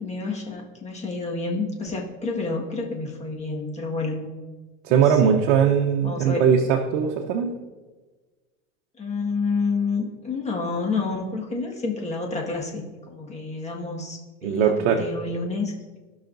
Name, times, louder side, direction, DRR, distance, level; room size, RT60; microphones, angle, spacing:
voice 1, 0.0-4.3 4.9-5.3 6.0-6.5 9.0-15.7, left 4 dB, 20° left, 0 dB, 1.6 m, -29 dB
voice 2, 4.8-7.5 14.4-15.0, right 7 dB, 70° right, 2 dB, 0.9 m, -20 dB
15.0 x 5.8 x 2.6 m, 1.3 s
supercardioid pair, 120°, 36 cm